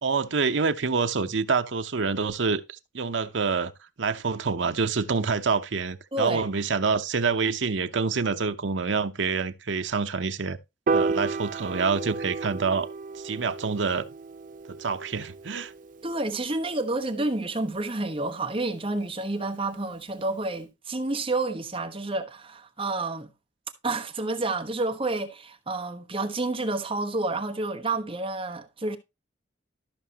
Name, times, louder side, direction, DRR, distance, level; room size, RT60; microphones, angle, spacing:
voice 1, 0.0-3.7 4.0-10.6 10.9-12.9 13.1-14.1 14.7-15.7, right 4 dB, 75° right, 0.8 m, -27 dB
voice 2, 6.1-6.5 16.0-23.3 23.8-29.0, right 2 dB, 30° right, 1.1 m, -29 dB
Piano, 10.9-17.2, right 4 dB, 45° right, 0.4 m, -32 dB
13.5 x 5.8 x 2.8 m
head